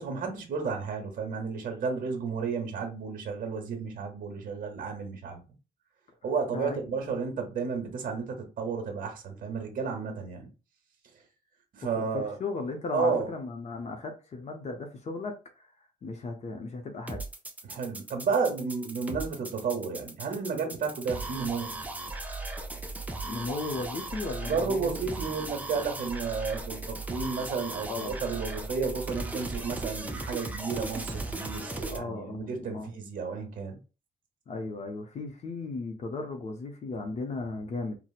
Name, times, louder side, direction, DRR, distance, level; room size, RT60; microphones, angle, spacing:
voice 1, 0.0-5.4 6.2-10.5 11.7-12.4 12.9-13.3 17.6-21.8 24.4-33.8, right 5 dB, 50° right, 0.9 m, -32 dB
voice 2, 12.0-15.7 16.0-17.2 23.2-25.1 27.9-28.2 31.9-32.9 34.5-38.0, left 3 dB, 40° left, 0.6 m, -36 dB
sound 1, 17.1-32.0, right 2 dB, 10° right, 0.4 m, -37 dB
4.2 x 2.0 x 2.4 m
cardioid pair, 145°, 18 cm